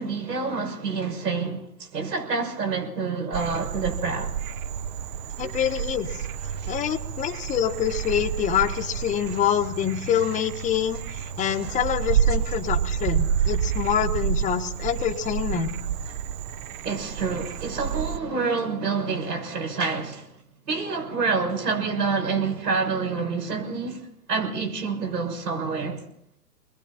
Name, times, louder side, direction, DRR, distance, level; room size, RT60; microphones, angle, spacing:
voice 1, 0.0-4.3 5.4-5.5 6.6-6.7 9.2-9.4 11.4-11.8 16.8-20.3 20.7-26.0, right 4 dB, 85° right, 6.5 m, -28 dB
Frog, 3.3-18.2, right 8 dB, 30° right, 0.7 m, -29 dB
voice 2, 5.4-6.1 6.7-15.7, left 9 dB, 15° left, 1.1 m, -26 dB
29.0 x 21.5 x 4.3 m
hypercardioid pair, 135°, 47 cm